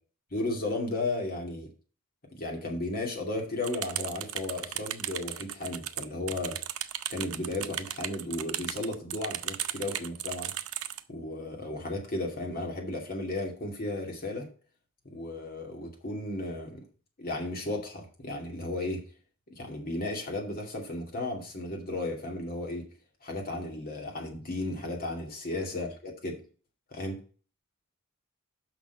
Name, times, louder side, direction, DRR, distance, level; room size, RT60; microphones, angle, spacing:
voice 1, 0.3-1.7 2.3-6.6 7.1-10.5 11.1-14.5 15.0-16.8 17.2-19.1 19.5-22.9 23.2-26.4 26.9-27.2, left 2 dB, 45° left, 1 dB, 2.4 m, -34 dB
sound 1, 3.6-11.0, right 12 dB, 85° right, 0.6 m, -36 dB
6.2 x 5.9 x 5.6 m, 0.39 s
head